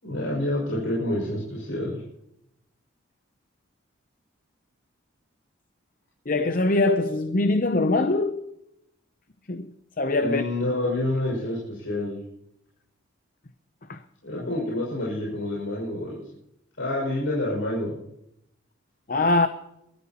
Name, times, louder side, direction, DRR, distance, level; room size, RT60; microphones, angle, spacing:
voice 1, 0.0-2.0 10.2-12.2 14.2-16.2 16.8-18.0, left 1 dB, 75° left, 5.9 m, -28 dB
voice 2, 6.3-8.5 9.5-10.5 13.9-14.0 14.4-14.5 19.1-19.5, left 2 dB, 40° left, 0.7 m, -23 dB
23.5 x 13.5 x 3.0 m
head